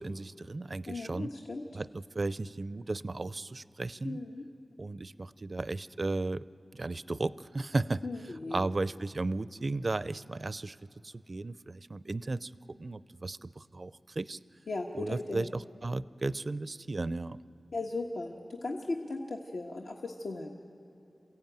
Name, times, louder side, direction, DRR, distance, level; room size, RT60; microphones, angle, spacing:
voice 1, 0.0-1.3 1.7-4.2 4.8-6.4 6.7-8.1 8.5-10.8 11.0-14.4 14.9-17.4, right 2 dB, 45° right, 17 dB, 0.4 m, -35 dB
voice 2, 0.9-1.6 4.0-4.4 8.0-8.7 14.7-15.5 17.7-20.5, left 2 dB, 85° left, 0 dB, 1.3 m, -37 dB
28.0 x 15.0 x 9.1 m, 2.8 s
wide cardioid pair, 95°, 0 cm